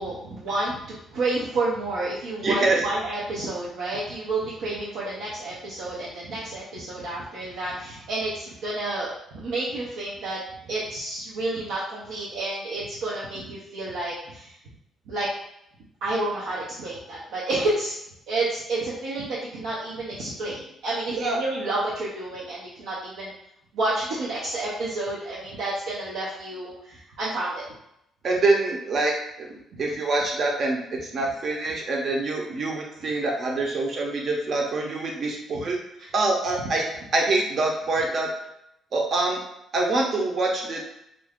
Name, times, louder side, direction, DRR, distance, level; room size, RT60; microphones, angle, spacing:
voice 1, 0.0-10.4 10.7-14.6 15.1-15.3 16.0-17.9 18.3-23.3 23.7-27.6 29.7-29.8 35.5-35.6 36.0-36.1, right 2 dB, 85° right, -8 dB, 0.6 m, -30 dB
voice 2, 2.4-2.8 21.1-21.4 28.2-35.8 36.1-36.9 37.1-38.3 38.9-39.4 39.7-40.8, right 2 dB, 50° right, 0 dB, 0.8 m, -25 dB
2.5 x 2.2 x 3.5 m, 0.79 s
cardioid pair, 100°, 0 cm